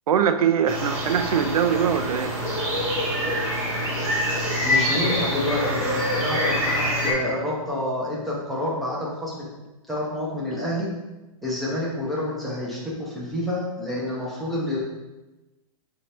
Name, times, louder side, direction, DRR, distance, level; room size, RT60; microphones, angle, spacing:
voice 1, 0.1-2.4, right 8 dB, 90° right, 10 dB, 0.4 m, -22 dB
sound 1, 0.7-7.1, equal, 25° right, 1.2 m, -25 dB
voice 2, 4.6-9.4 9.9-10.9 11.4-14.9, left 1 dB, ahead, -7 dB, 0.4 m, -28 dB
5.6 x 2.7 x 3.2 m, 1.1 s
hypercardioid pair, 170°, 18 cm